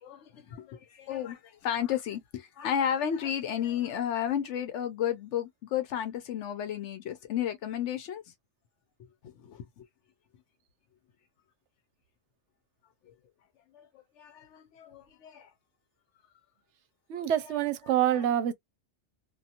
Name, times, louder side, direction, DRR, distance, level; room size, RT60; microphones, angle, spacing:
voice 1, 0.0-8.2 9.4-9.8 13.7-13.9 14.2-15.5, left 9 dB, 90° left, 1.0 m, -33 dB
voice 2, 17.1-18.5, right 11 dB, 80° right, 0.9 m, -26 dB
2.8 x 2.5 x 2.5 m
omnidirectional pair, 1.2 m